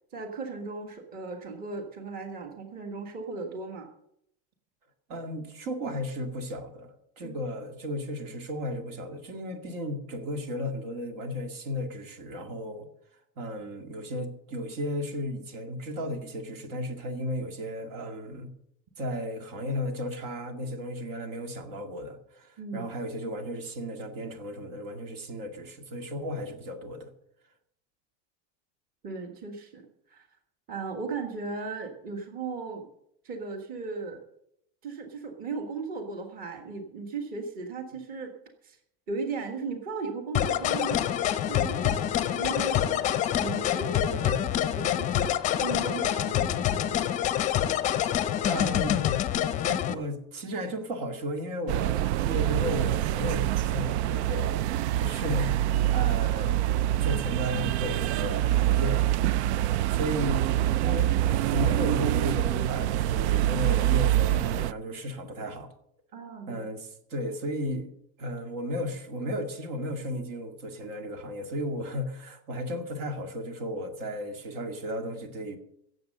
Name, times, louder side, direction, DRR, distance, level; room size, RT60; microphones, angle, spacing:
voice 1, 0.1-3.9 7.2-7.4 22.6-22.9 29.0-30.3 30.7-32.8 33.2-34.2 34.8-38.3 38.6-38.8 39.1-41.1 41.5-47.2 49.6-49.9 66.1-66.6, right 4 dB, 25° right, 4 dB, 1.5 m, -37 dB
voice 2, 5.1-12.9 13.4-18.5 19.0-27.1 48.4-49.1 49.9-54.7 54.9-56.6 57.0-59.0 59.9-60.4 60.8-61.1 61.5-65.7 66.5-67.9 68.2-75.6, equal, 65° right, 6 dB, 2.1 m, -34 dB
sound 1, 40.3-49.9, left 11 dB, 25° left, 0.6 m, -26 dB
sound 2, 51.7-64.7, right 13 dB, 80° right, 0.5 m, -25 dB
16.5 x 7.6 x 6.6 m, 0.75 s
supercardioid pair, 160°, 33 cm